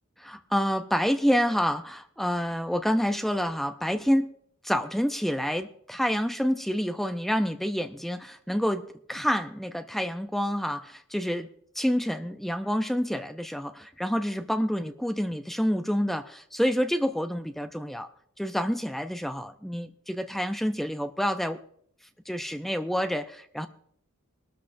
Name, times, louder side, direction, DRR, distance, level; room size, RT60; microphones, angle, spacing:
voice 1, 0.2-4.3 4.6-11.5 11.8-18.1 18.4-21.6 22.3-23.7, equal, ahead, 8 dB, 0.5 m, -28 dB
22.5 x 12.5 x 2.6 m, 0.66 s
head